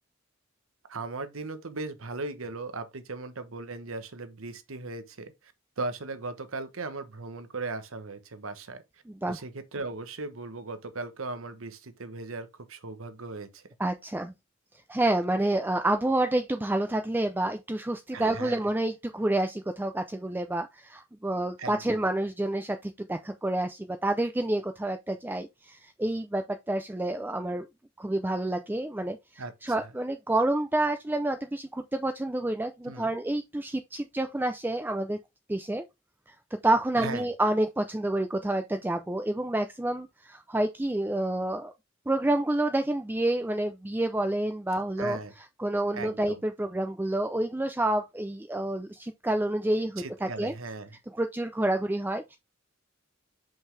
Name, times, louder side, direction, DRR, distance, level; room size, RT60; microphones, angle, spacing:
voice 1, 0.9-5.3 5.8-8.8 9.3-13.6 18.1-18.6 21.6-22.0 29.4-29.9 32.9-33.1 37.0-37.3 45.0-45.3 45.9-46.4 50.0-51.0, right 3 dB, 85° right, 1.1 m, -38 dB
voice 2, 9.1-9.4 13.8-14.3 14.9-27.7 28.0-35.2 35.5-35.8 36.6-41.7 42.1-45.2 45.6-50.5 51.1-52.4, right 1 dB, 10° right, 0.4 m, -28 dB
5.7 x 5.3 x 3.2 m
head